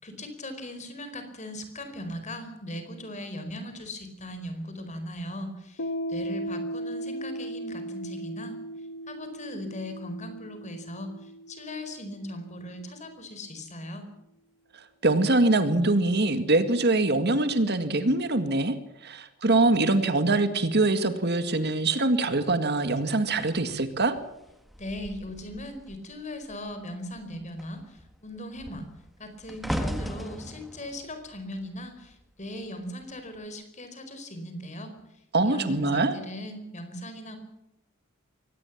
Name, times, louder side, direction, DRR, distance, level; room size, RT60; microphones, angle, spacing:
voice 1, 0.0-8.6 9.1-14.1 24.8-28.8 29.2-34.9 35.4-37.4, left 1 dB, 35° left, 8 dB, 4.7 m, -39 dB
Piano, 5.8-13.0, right 1 dB, 55° left, 1.1 m, -37 dB
voice 2, 15.0-18.8 19.0-24.1 35.3-36.1, right 2 dB, 50° right, 9 dB, 2.0 m, -23 dB
sound 1, 23.4-26.1 26.4-26.8 27.1-32.4 33.2-33.4, equal, ahead, 1.8 m, -38 dB
23.5 x 18.5 x 7.4 m, 0.87 s
head